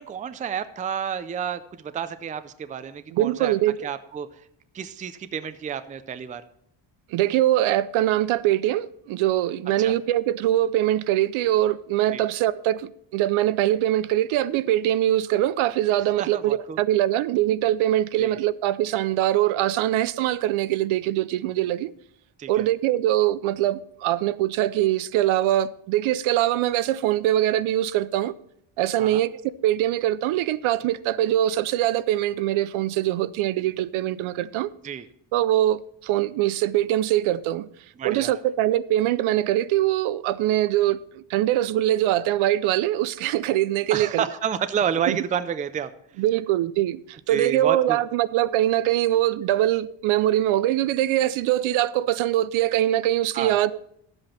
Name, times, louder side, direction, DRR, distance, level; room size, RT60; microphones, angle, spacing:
voice 1, 0.0-3.5 3.8-4.3 4.7-6.4 9.8-9.9 12.1-12.2 16.2-16.8 18.2-18.4 22.4-22.7 29.0-29.2 34.8-35.1 38.0-38.4 43.9-45.9 47.3-48.0 53.3-53.6, right 8 dB, 20° right, 0.3 m, -30 dB
voice 2, 3.1-3.9 7.1-21.9 22.5-28.3 28.8-29.3 29.6-34.7 35.3-37.7 38.0-44.2 45.1-45.2 46.2-53.8, right 13 dB, 85° right, 0.6 m, -23 dB
12.0 x 7.8 x 4.3 m
cardioid pair, 145°, 48 cm